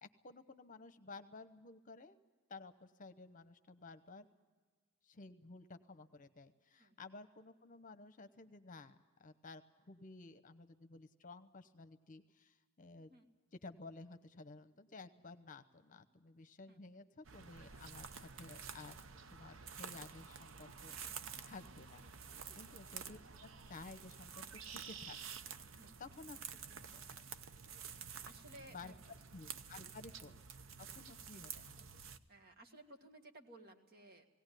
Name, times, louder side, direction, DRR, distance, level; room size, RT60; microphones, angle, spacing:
voice 1, 0.0-2.2 2.5-4.3 5.0-13.1 13.6-21.0 21.4-22.0 22.5-24.5 24.7-25.2 26.0-26.4 26.8-27.3 28.7-28.9 29.3-30.4 30.8-31.8, left 3 dB, 40° left, 10 dB, 0.9 m, -54 dB
voice 2, 16.7-17.0 21.5-21.6 22.4-22.6 25.8-26.0 27.9-28.9 29.7-29.9 31.3-31.6 32.3-34.3, right 1 dB, 50° right, 4 dB, 1.8 m, -59 dB
sound 1, 17.2-32.2, right 6 dB, 70° right, 0.8 m, -50 dB
19.0 x 17.5 x 9.2 m, 1.4 s
head